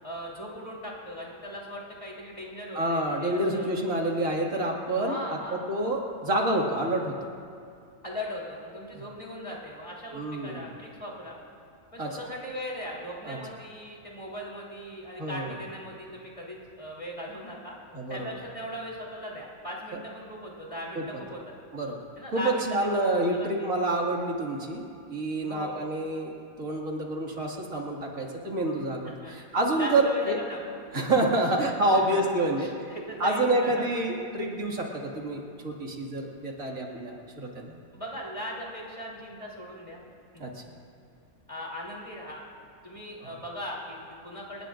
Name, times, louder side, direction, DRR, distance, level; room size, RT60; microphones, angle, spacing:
voice 1, 0.0-3.7 4.9-5.7 8.0-11.4 11.9-17.7 18.1-21.5 22.2-22.7 22.9-23.7 25.4-25.8 29.2-29.3 29.8-31.1 31.9-32.2 32.6-33.9 37.9-40.0 41.5-42.4 42.8-44.7, equal, 20° left, -4 dB, 3.5 m, -39 dB
voice 2, 2.7-5.4 5.7-7.3 8.9-9.0 10.1-10.7 12.0-12.2 13.2-13.4 15.2-15.5 17.9-18.4 21.7-22.0 22.3-24.8 25.1-26.3 26.6-30.4 30.9-32.9 33.2-37.8 40.4-40.6 43.2-43.3, right 1 dB, 70° right, -1 dB, 2.7 m, -28 dB
29.0 x 19.0 x 2.6 m, 2.4 s
omnidirectional pair, 1.5 m